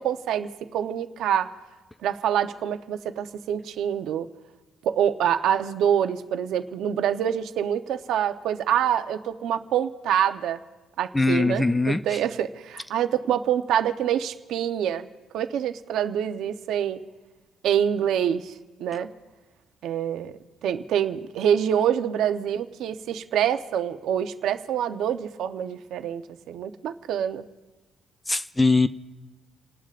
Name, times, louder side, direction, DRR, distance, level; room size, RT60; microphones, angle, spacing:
voice 1, 0.0-1.6 2.0-4.3 4.8-10.6 11.0-15.1 15.3-17.0 17.6-18.5 18.8-19.1 19.8-20.3 20.6-26.2 26.5-27.5, right 9 dB, 70° right, 8 dB, 0.9 m, -26 dB
voice 2, 11.1-12.2 28.3-28.9, left 3 dB, 10° left, 12 dB, 0.4 m, -21 dB
30.0 x 19.0 x 2.5 m, 1.2 s
cardioid pair, 150°, 0 cm